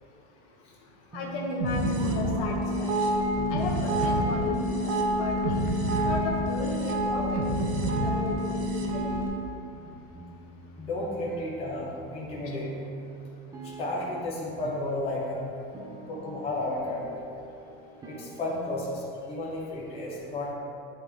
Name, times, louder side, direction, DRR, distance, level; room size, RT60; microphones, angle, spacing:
voice 1, 1.1-3.2 3.5-5.6 6.0-9.0, left 3 dB, 50° left, -2 dB, 1.1 m, -35 dB
sound 1, 1.1-19.1, right 4 dB, 10° right, 0.4 m, -44 dB
sound 2, 1.6-9.3, equal, 80° right, 1.0 m, -27 dB
voice 2, 10.8-12.7 13.6-15.5 16.1-17.1 18.0-20.5, left 2 dB, 20° left, -6 dB, 0.9 m, -33 dB
9.5 x 3.6 x 3.3 m, 2.6 s
cardioid pair, 160°, 32 cm